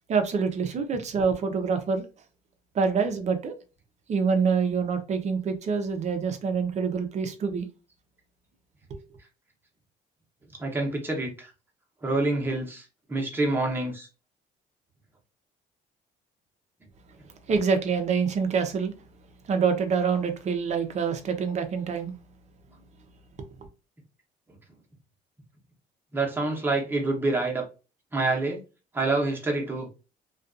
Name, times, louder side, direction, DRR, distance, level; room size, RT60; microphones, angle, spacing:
voice 1, 0.1-2.0 2.7-3.5 4.1-7.7 8.9-9.0 17.5-18.9 19.5-22.1, right 5 dB, 40° right, 0.6 m, -26 dB
voice 2, 10.6-11.5 12.0-14.1 26.1-27.6 28.1-28.6 28.9-29.9, right 2 dB, 10° right, 0.9 m, -27 dB
2.5 x 2.3 x 2.4 m
cardioid pair, 110°, 17 cm